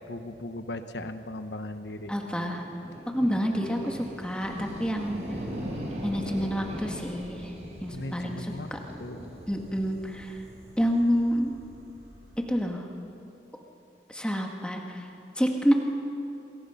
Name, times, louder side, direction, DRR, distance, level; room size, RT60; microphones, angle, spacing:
voice 1, 0.1-2.1 7.9-8.7 9.0-9.3, left 1 dB, 70° left, 9 dB, 1.2 m, -37 dB
voice 2, 2.1-2.6 3.1-5.2 6.0-7.4 7.8-8.8 9.5-10.3 10.8-11.5 12.5-12.8 14.1-14.8 15.4-15.7, equal, 5° left, 1 dB, 1.7 m, -28 dB
sound 1, 2.1-12.5, equal, 35° right, 4.8 m, -40 dB
27.5 x 22.0 x 5.8 m, 2.9 s
head